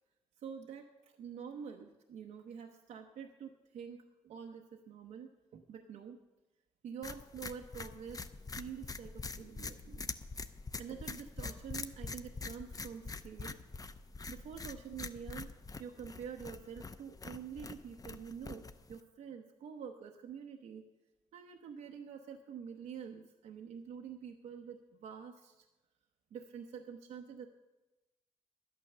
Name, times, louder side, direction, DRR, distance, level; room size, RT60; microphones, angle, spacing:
voice 1, 0.4-6.2 6.8-8.3 8.6-10.1 10.8-13.6 14.3-15.5 15.8-20.8 21.3-25.7 26.3-27.5, right 7 dB, 75° right, 4 dB, 0.8 m, -47 dB
sound 1, 7.0-19.0, left 4 dB, 30° left, 0.7 m, -45 dB
11.5 x 8.9 x 6.6 m, 1.0 s
supercardioid pair, 65°, 12 cm